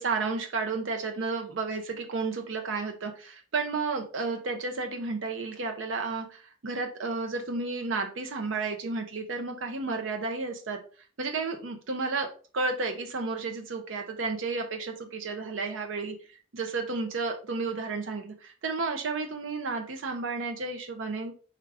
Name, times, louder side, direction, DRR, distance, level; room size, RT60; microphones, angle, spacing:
voice 1, 0.0-10.8 11.2-16.2 16.5-21.3, right 3 dB, 75° right, 4 dB, 0.6 m, -32 dB
4.4 x 2.5 x 4.6 m, 0.40 s
head